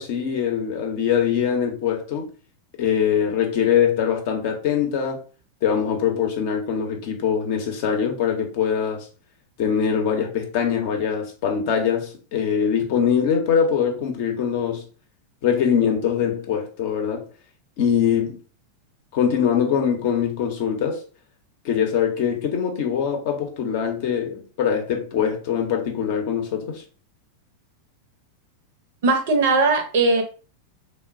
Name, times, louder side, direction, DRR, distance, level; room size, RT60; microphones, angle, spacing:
voice 1, 0.0-2.3 2.8-5.2 5.6-9.1 9.6-14.8 15.4-17.2 17.8-18.4 19.1-21.0 21.6-26.8, left 8 dB, 50° left, 0.6 m, -23 dB
voice 2, 29.0-30.2, right 3 dB, 55° right, 0.5 m, -19 dB
3.0 x 2.0 x 2.5 m
figure-of-eight pair, 90°, 0 cm